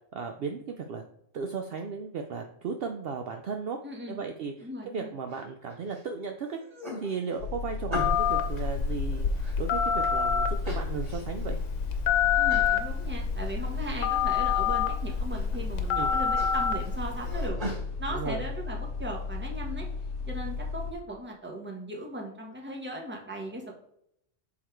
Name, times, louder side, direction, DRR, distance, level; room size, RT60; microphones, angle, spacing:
voice 1, 0.1-1.0 1.3-3.8 4.1-6.6 7.0-9.3 9.6-11.6 16.0-16.1 18.1-18.4, right 5 dB, 60° right, 4 dB, 0.7 m, -35 dB
voice 2, 3.8-4.2 4.6-5.2 12.3-17.6 18.0-19.9 20.3-23.7, right 1 dB, 10° right, 0 dB, 1.0 m, -38 dB
sound 1, 5.3-6.0 6.4-8.4 8.9-10.1 10.6-11.5 11.9-12.0 12.5-12.8 13.2-13.9 14.1-14.7 15.1-15.6 15.9-17.8, equal, 30° right, 2.2 m, -41 dB
sound 2, 7.4-20.9, left 4 dB, 55° left, 0.9 m, -35 dB
Telephone, 7.9-17.5, left 7 dB, 90° left, 1.1 m, -28 dB
6.4 x 3.8 x 4.5 m, 0.74 s
omnidirectional pair, 1.2 m